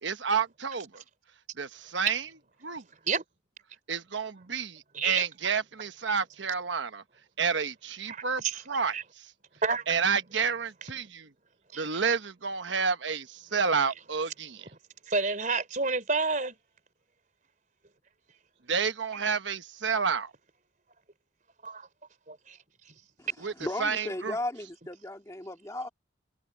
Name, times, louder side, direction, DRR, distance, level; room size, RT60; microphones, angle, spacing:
voice 1, 0.0-1.0 1.6-2.3 2.6-2.8 3.9-7.0 7.4-8.9 9.9-11.3 11.8-14.7 18.7-20.3 23.4-23.5 23.8-24.4, right 5 dB, 70° right, 1.1 m, -30 dB
voice 2, 4.9-5.2 8.1-8.6 8.9-9.0 9.6-9.8 11.7-11.8 15.1-16.5 19.1-19.2 21.6-21.9 22.3-22.6, right 4 dB, 40° right, 3.9 m, -29 dB
voice 3, 23.2-25.9, left 1 dB, 15° left, 2.4 m, -36 dB
head